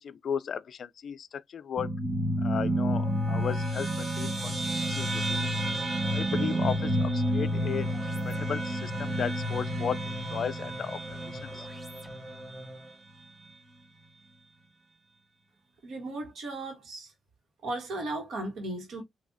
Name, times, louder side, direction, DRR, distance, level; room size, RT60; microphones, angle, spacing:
voice 1, 0.0-2.0 2.4-5.5 6.1-7.9 8.2-10.0 10.3-11.0 11.3-11.7, left 7 dB, 65° left, 0.3 m, -35 dB
sound 1, 1.8-12.5, equal, 35° right, 1.6 m, -30 dB
sound 2, 4.2-13.0, equal, 5° left, 0.7 m, -45 dB
voice 2, 15.8-17.1 17.6-19.0, right 2 dB, 75° right, 1.5 m, -36 dB
3.9 x 2.7 x 2.6 m
cardioid pair, 80°, 0 cm